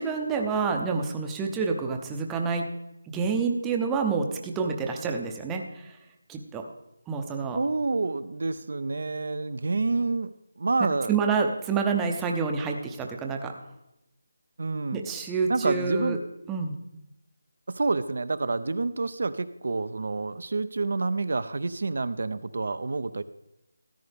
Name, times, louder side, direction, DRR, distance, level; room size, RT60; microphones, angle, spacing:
voice 1, 0.0-2.7 3.1-6.0 6.3-6.7 7.1-7.6 11.1-13.5 14.9-16.2 16.5-16.8, right 5 dB, 10° right, 2 dB, 0.6 m, -28 dB
voice 2, 7.5-11.1 14.6-15.0 15.5-16.2 17.7-23.2, right 3 dB, 60° right, 13 dB, 0.5 m, -28 dB
14.0 x 9.8 x 3.5 m, 0.89 s
figure-of-eight pair, 170°, 0 cm